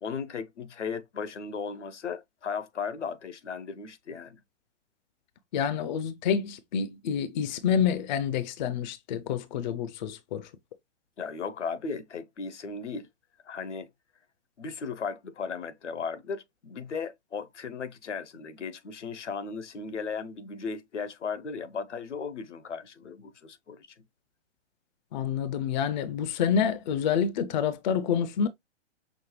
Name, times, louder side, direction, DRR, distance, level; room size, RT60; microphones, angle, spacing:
voice 1, 0.0-4.4 11.2-13.1 13.4-13.9 14.6-24.0, left 5 dB, 75° left, 0.9 m, -36 dB
voice 2, 5.5-10.5 25.1-28.5, left 7 dB, 40° left, 0.5 m, -28 dB
6.0 x 2.1 x 3.1 m
figure-of-eight pair, 120°, 36 cm